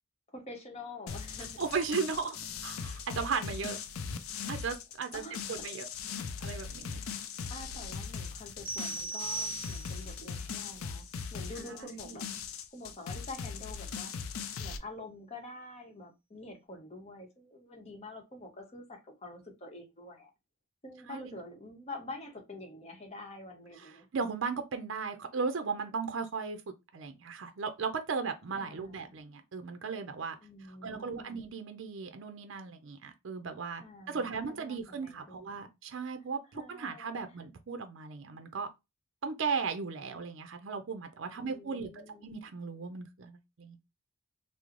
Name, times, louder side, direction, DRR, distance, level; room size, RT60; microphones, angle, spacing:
voice 1, 0.3-1.6 5.1-5.6 6.9-7.0 7.5-12.3 12.7-14.1 14.6-20.3 20.8-24.1 28.5-29.1 30.4-31.4 33.8-35.7 36.5-37.4 41.3-42.3, left 2 dB, 30° left, 0.9 m, -47 dB
sound 1, 1.1-14.8, left 6 dB, 85° left, 0.4 m, -40 dB
voice 2, 1.6-3.8 4.5-5.2 5.5-5.9 6.4-7.1 11.7-12.2 21.1-21.4 23.8-26.6 26.9-30.4 30.7-38.7 39.2-41.9 42.2-43.8, right 5 dB, 60° right, 0.5 m, -36 dB
sound 2, 8.7-10.2, right 3 dB, 5° right, 1.0 m, -38 dB
3.1 x 2.0 x 3.7 m
head